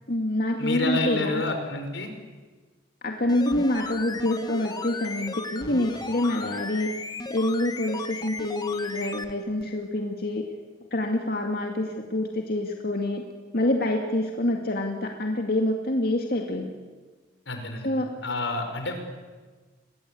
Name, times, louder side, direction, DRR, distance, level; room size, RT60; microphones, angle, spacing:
voice 1, 0.1-1.4 3.0-7.0 7.3-10.5 10.9-13.2 13.5-16.7 17.8-18.1, left 1 dB, 55° left, 2 dB, 2.3 m, -26 dB
voice 2, 0.6-2.1 5.9-6.5 17.5-17.9 18.2-19.0, left 2 dB, 85° left, 6 dB, 5.4 m, -29 dB
sound 1, 3.2-9.3 9.6-9.7, left 3 dB, 20° left, 1.5 m, -36 dB
28.5 x 22.5 x 8.6 m, 1.4 s
head